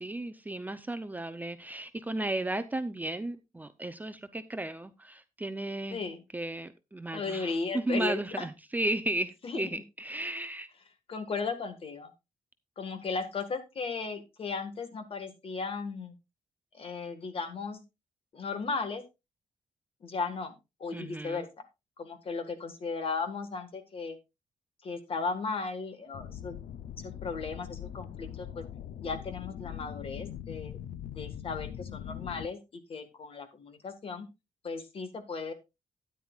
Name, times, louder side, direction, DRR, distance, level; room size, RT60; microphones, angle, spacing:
voice 1, 0.0-6.0 6.3-10.7 20.9-21.4, right 1 dB, 10° right, 0.6 m, -34 dB
voice 2, 5.9-6.2 7.1-8.5 9.4-9.7 11.1-12.1 12.8-16.2 16.7-17.8 18.3-19.0 20.0-21.5 22.0-24.2 24.8-26.6 26.9-28.6 29.0-34.3 34.6-35.5, left 4 dB, 45° left, 1.7 m, -36 dB
sound 1, 26.1-32.5, left 10 dB, 85° left, 0.6 m, -42 dB
13.0 x 9.6 x 2.4 m
wide cardioid pair, 155°, 13 cm